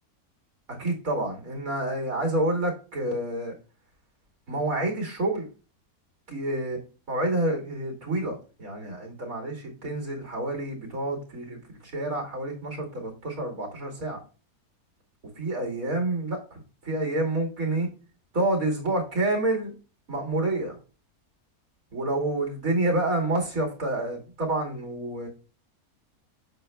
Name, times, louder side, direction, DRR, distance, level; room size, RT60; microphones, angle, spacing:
voice 1, 0.8-3.5 4.5-5.5 6.3-6.8 7.1-14.2 15.4-17.9 18.3-19.7 20.1-20.8 21.9-25.3, right 2 dB, 65° right, 0 dB, 2.8 m, -28 dB
7.9 x 6.8 x 2.3 m, 0.33 s
omnidirectional pair, 1.6 m